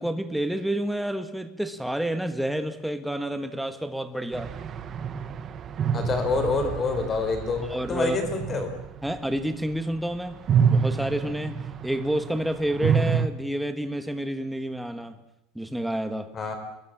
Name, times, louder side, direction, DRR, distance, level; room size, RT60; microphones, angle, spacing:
voice 1, 0.0-4.5 7.6-8.2 9.0-10.4 10.7-11.6 11.8-15.1 15.5-16.3, right 1 dB, ahead, 9 dB, 1.5 m, -29 dB
sound 1, 4.3-10.0 10.3-13.3, right 7 dB, 25° right, 1.2 m, -28 dB
voice 2, 5.9-8.7 16.3-16.6, left 4 dB, 20° left, 7 dB, 4.2 m, -27 dB
27.5 x 21.5 x 7.4 m, 0.81 s
cardioid pair, 175°, 0 cm